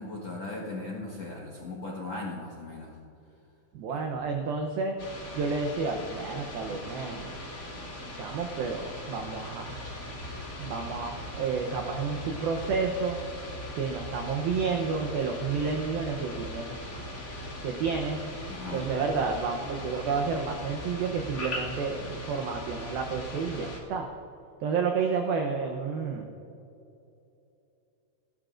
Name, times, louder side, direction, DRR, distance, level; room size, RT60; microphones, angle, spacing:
voice 1, 0.0-3.0 3.9-4.1 18.5-18.9, left 2 dB, 70° left, -2 dB, 1.6 m, -38 dB
voice 2, 3.7-5.0 5.4-7.3 8.1-9.8 10.6-13.2 13.7-16.8 17.6-18.2 18.7-24.1 24.6-26.3, right 5 dB, 85° right, 3 dB, 2.0 m, -30 dB
sound 1, 5.0-23.8, left 1 dB, 40° left, 1.2 m, -39 dB
29.0 x 12.5 x 2.6 m, 2.7 s
omnidirectional pair, 5.5 m